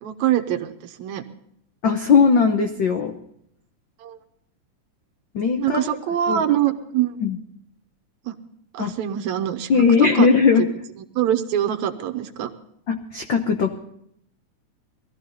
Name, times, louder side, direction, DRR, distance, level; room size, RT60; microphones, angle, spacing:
voice 1, 0.0-1.2 4.0-4.2 5.6-7.2 8.3-8.4 8.7-9.7 10.0-10.3 10.6-10.7 11.2-12.5, right 11 dB, 75° right, 9 dB, 2.2 m, -24 dB
voice 2, 1.8-3.1 5.3-5.8 6.3-6.4 7.2-7.4 8.8-8.9 9.7-10.7 12.9-13.8, left 5 dB, 80° left, 5 dB, 1.0 m, -18 dB
20.0 x 13.5 x 4.0 m, 0.71 s
omnidirectional pair, 3.5 m